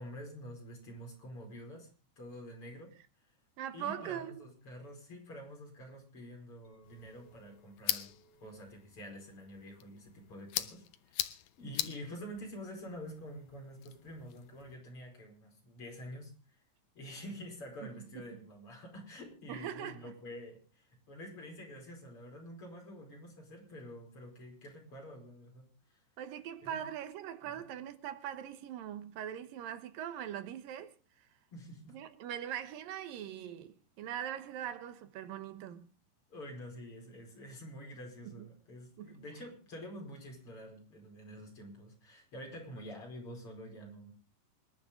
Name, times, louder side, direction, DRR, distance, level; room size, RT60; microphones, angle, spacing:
voice 1, 0.0-1.9 2.2-2.9 3.7-8.1 8.4-16.3 17.0-26.0 26.6-26.8 27.4-27.7 31.5-32.0 36.3-44.1, equal, 40° left, 5.7 m, -48 dB
voice 2, 3.6-4.5 17.8-18.2 19.5-20.1 26.2-31.3 31.9-35.9 38.2-38.5 39.0-39.2, right 10 dB, 85° right, 2.9 m, -42 dB
Chink clink, 6.6-11.9, right 5 dB, 15° right, 7.4 m, -70 dB
sound 1, 6.8-14.8, left 13 dB, 75° left, 2.4 m, -42 dB
26.0 x 11.0 x 3.8 m
omnidirectional pair, 3.9 m